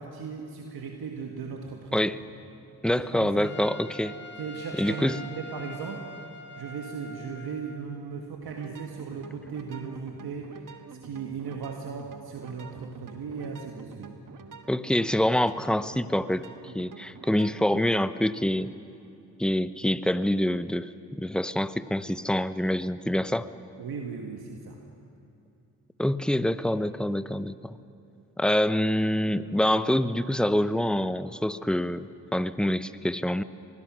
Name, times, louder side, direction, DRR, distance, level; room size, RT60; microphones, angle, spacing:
voice 1, 0.0-2.1 3.1-3.5 4.4-6.1 6.5-14.1 23.8-24.8, right 5 dB, 75° right, 2 dB, 1.8 m, -37 dB
voice 2, 2.8-4.1 4.7-5.2 14.7-16.4 16.7-18.7 19.4-23.5 26.0-27.8 28.4-33.4, left 1 dB, ahead, 14 dB, 0.8 m, -26 dB
Trumpet, 3.4-8.0, left 1 dB, 30° left, 1.5 m, -43 dB
sound 1, 8.4-18.0, right 5 dB, 55° right, 1.5 m, -47 dB
24.5 x 20.5 x 6.3 m, 2.8 s
supercardioid pair, 50°, 38 cm